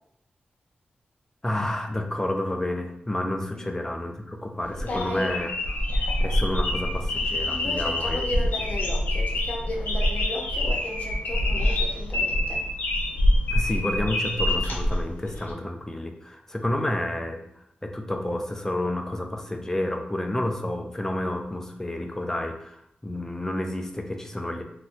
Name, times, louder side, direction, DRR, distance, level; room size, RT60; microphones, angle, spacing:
voice 1, 1.4-5.5 6.2-8.4 13.5-24.6, left 1 dB, 15° left, 4 dB, 0.4 m, -30 dB
sound 1, 4.6-15.5, left 1 dB, 90° left, 0.5 m, -26 dB
voice 2, 4.8-5.4 7.5-12.6, left 1 dB, 50° left, -1 dB, 0.7 m, -34 dB
2.6 x 2.2 x 3.6 m, 0.73 s
wide cardioid pair, 95°, 3 cm